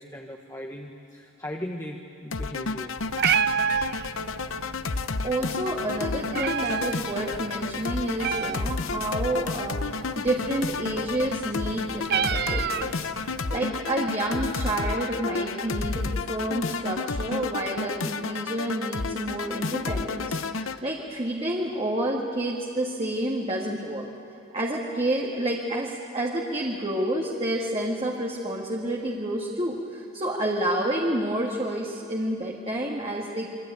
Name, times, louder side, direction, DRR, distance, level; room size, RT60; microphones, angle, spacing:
voice 1, 0.0-2.9, left 1 dB, 15° left, 1 dB, 1.3 m, -38 dB
sound 1, 2.3-20.8, left 4 dB, 65° left, 0.9 m, -31 dB
Meow, 3.0-13.4, right 7 dB, 50° right, 0.6 m, -31 dB
voice 2, 5.2-13.1 13.5-24.1 24.5-33.5, right 1 dB, 25° right, -2 dB, 2.1 m, -29 dB
27.0 x 23.5 x 9.4 m, 2.6 s
head